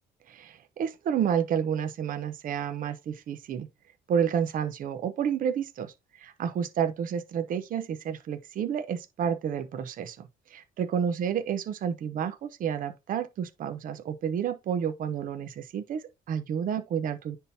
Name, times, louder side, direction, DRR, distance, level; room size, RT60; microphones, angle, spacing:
voice 1, 0.3-3.7 4.1-17.4, right 8 dB, 55° right, 0.9 m, -30 dB
9.8 x 3.7 x 2.8 m
cardioid pair, 110°, 17 cm